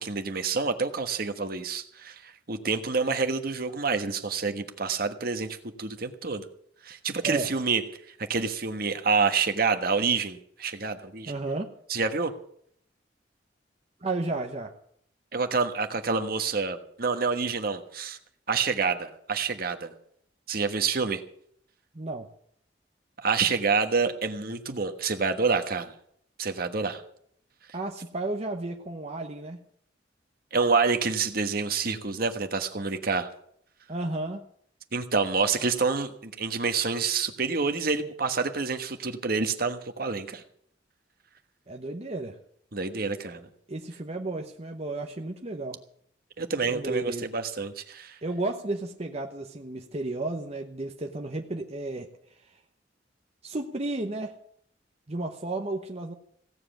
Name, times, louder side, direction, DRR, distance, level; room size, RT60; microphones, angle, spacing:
voice 1, 0.0-6.5 6.8-7.8 8.3-11.3 11.9-12.3 15.3-18.2 18.5-19.9 20.5-21.2 23.2-25.9 26.4-27.0 30.5-33.3 34.9-40.4 42.7-43.5 46.4-48.2, right 4 dB, 55° right, 7 dB, 1.4 m, -27 dB
voice 2, 11.3-11.7 14.0-14.7 21.9-22.3 27.7-29.6 33.9-34.4 41.7-42.4 43.7-45.8 46.7-47.3 48.2-52.1 53.4-54.4 55.1-56.1, right 2 dB, 35° right, 3 dB, 1.0 m, -33 dB
16.5 x 7.7 x 9.0 m, 0.66 s
head